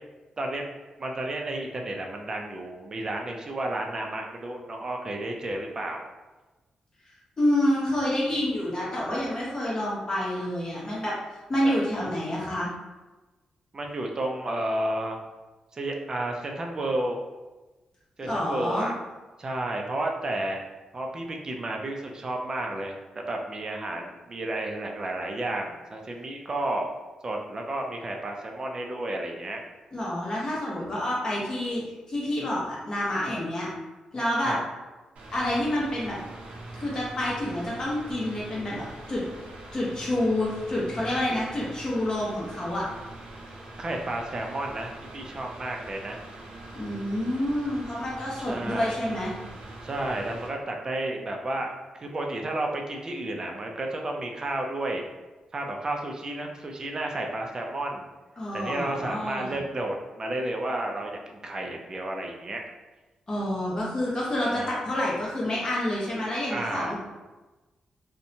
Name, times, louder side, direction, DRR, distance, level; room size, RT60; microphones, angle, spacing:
voice 1, 1.0-6.0 11.6-11.8 13.7-15.2 15.7-17.2 18.2-18.9 19.4-20.6 20.9-26.9 27.2-29.6 34.4-34.6 43.8-46.2 48.5-49.0 49.8-55.1 55.5-58.1 58.5-62.6 64.4-64.8 66.5-67.0, right 1 dB, 35° right, 1 dB, 0.4 m, -32 dB
voice 2, 7.4-11.1 11.5-12.7 18.2-18.9 29.9-31.8 32.1-33.7 34.1-34.6 35.3-36.2 36.7-39.2 39.7-42.8 46.7-49.3 58.4-59.6 63.3-67.0, left 1 dB, 30° left, -5 dB, 0.9 m, -28 dB
Mechanical fan, 35.2-50.5, right 2 dB, 75° right, 0.6 m, -43 dB
2.6 x 2.1 x 2.7 m, 1.2 s
cardioid pair, 105°, 2 cm